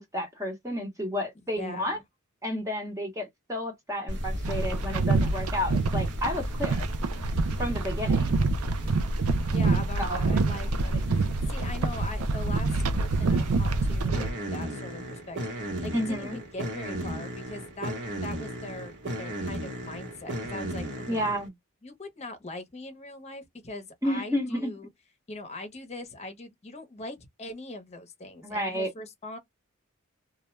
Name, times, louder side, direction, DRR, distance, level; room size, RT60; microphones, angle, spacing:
voice 1, 0.0-2.0 2.4-6.8 7.6-8.4 10.0-10.4 15.9-16.4 21.1-21.5 24.0-24.7 28.4-28.9, equal, 15° right, 0.9 m, -31 dB
voice 2, 1.5-2.0 9.5-17.9 18.2-21.3 21.8-24.9 25.3-29.4, left 2 dB, 30° left, 0.8 m, -41 dB
sound 1, 4.1-21.5, equal, 55° right, 1.1 m, -34 dB
sound 2, 4.4-14.3, right 4 dB, 80° right, 0.5 m, -27 dB
2.4 x 2.2 x 3.1 m
head